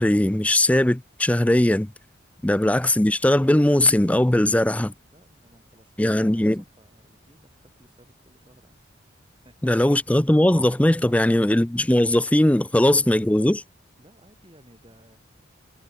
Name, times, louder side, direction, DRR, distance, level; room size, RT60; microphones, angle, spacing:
voice 1, 0.0-1.9 2.4-4.9 6.0-6.6 9.6-13.6, left 1 dB, 5° left, 0.4 m, -19 dB
voice 2, 5.0-8.9 9.4-10.5 11.1-11.6 14.0-15.2, right 1 dB, 25° right, 6.9 m, -57 dB
head